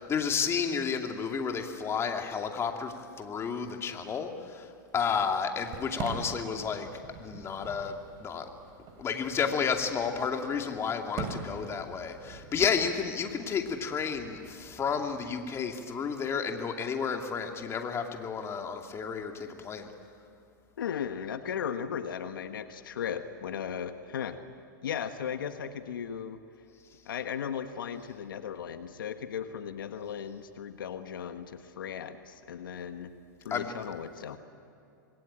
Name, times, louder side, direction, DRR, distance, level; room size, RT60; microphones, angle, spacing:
voice 1, 0.0-6.9 7.2-8.5 9.0-19.9 33.5-33.7, left 6 dB, 25° left, 4 dB, 2.6 m, -31 dB
Fireworks, 5.6-15.5, right 5 dB, 40° right, 4.1 m, -44 dB
voice 2, 20.8-24.4 24.8-26.4 27.0-33.1 33.4-34.4, left 8 dB, 80° left, 8 dB, 1.5 m, -36 dB
27.0 x 21.5 x 8.9 m, 2.6 s
hypercardioid pair, 115°, 11 cm